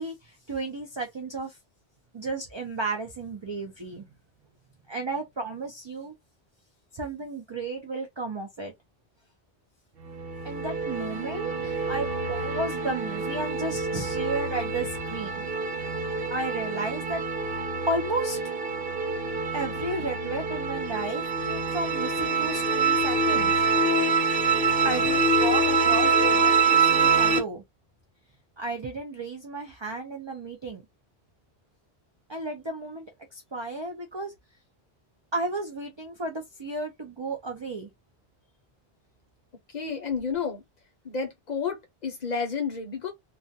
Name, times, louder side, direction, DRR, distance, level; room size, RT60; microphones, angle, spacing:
voice 1, 0.0-1.6 2.1-4.1 4.9-6.1 6.9-8.7 10.4-15.4 16.3-17.2 17.5-18.4 19.5-23.5 24.8-27.6 28.6-30.8 32.3-34.3 35.3-37.9, right 2 dB, 40° right, 0.4 m, -33 dB
sound 1, 10.0-27.4, right 4 dB, 65° right, 0.8 m, -25 dB
voice 2, 39.7-40.6 41.0-41.8 42.0-43.1, left 5 dB, 45° left, 0.7 m, -30 dB
2.4 x 2.1 x 2.6 m
omnidirectional pair, 1.1 m